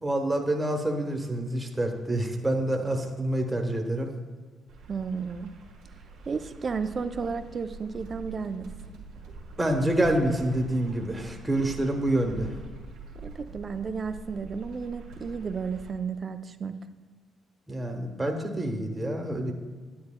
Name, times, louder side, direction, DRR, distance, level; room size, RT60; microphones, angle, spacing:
voice 1, 0.0-4.1 9.6-12.5 17.7-19.5, right 1 dB, 15° right, 3 dB, 1.1 m, -27 dB
sound 1, 4.7-15.9, right 3 dB, 80° right, 1.3 m, -44 dB
voice 2, 4.9-5.5 6.3-8.7 13.2-16.7, right 5 dB, 40° right, 10 dB, 0.5 m, -33 dB
9.7 x 9.3 x 2.2 m, 1.5 s
cardioid pair, 90°, 0 cm